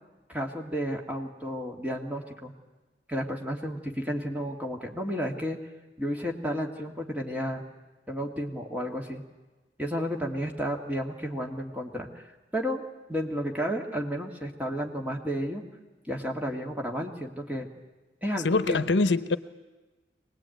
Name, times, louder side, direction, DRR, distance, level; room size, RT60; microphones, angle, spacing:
voice 1, 0.3-2.5 3.1-5.6 6.0-7.6 8.1-9.2 9.8-12.8 13.1-15.6 16.1-17.7 18.2-18.8, equal, 10° right, 1 dB, 2.2 m, -32 dB
voice 2, 18.4-19.4, left 3 dB, 85° left, 13 dB, 0.9 m, -23 dB
24.0 x 19.5 x 9.3 m, 1.2 s
head